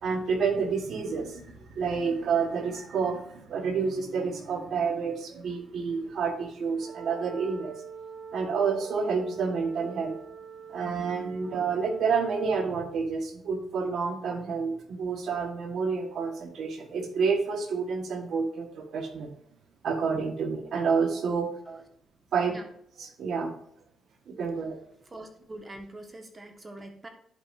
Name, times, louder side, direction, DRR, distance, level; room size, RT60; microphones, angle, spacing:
voice 1, 0.0-7.7 8.3-10.2 10.7-19.3 19.8-21.5 22.3-22.5 23.0-23.5 24.3-24.8, right 5 dB, 65° right, 5 dB, 1.4 m, -29 dB
Wind instrument woodwind instrument, 6.7-13.0, right 6 dB, 40° right, 0.7 m, -45 dB
voice 2, 25.1-27.1, right 2 dB, 25° right, 4 dB, 1.4 m, -44 dB
11.0 x 5.2 x 2.6 m, 0.67 s
cardioid pair, 90°, 0 cm